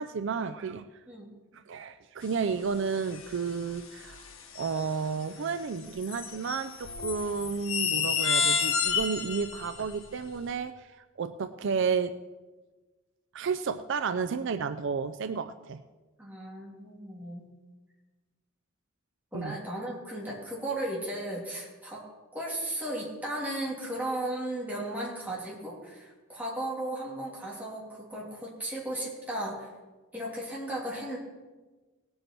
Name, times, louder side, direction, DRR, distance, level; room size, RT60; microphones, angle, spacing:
voice 1, 0.0-0.9 1.5-4.2 4.5-12.1 13.3-15.8 19.3-19.6, right 5 dB, 60° right, 11 dB, 0.4 m, -32 dB
sound 1, 3.0-3.5 3.8-4.9 5.8-10.1, left 6 dB, 80° left, 1.3 m, -30 dB
voice 2, 16.2-17.5 19.3-22.0 22.3-29.7 30.1-31.2, right 1 dB, 10° right, -5 dB, 2.9 m, -35 dB
18.0 x 7.9 x 4.6 m, 1.3 s
head